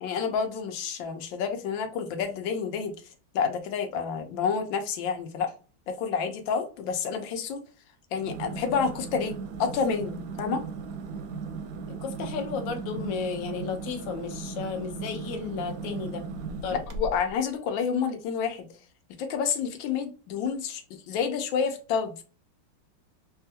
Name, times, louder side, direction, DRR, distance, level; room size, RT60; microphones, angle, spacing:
voice 1, 0.0-2.9 3.3-5.5 5.9-7.6 8.1-10.6 16.9-18.7 19.2-22.2, left 6 dB, 90° left, 1.4 m, -29 dB
sound 1, 8.2-17.4, right 4 dB, 70° right, 0.9 m, -37 dB
voice 2, 11.9-16.2 16.6-16.8, left 5 dB, 60° left, 1.0 m, -33 dB
3.5 x 2.3 x 2.7 m
omnidirectional pair, 2.0 m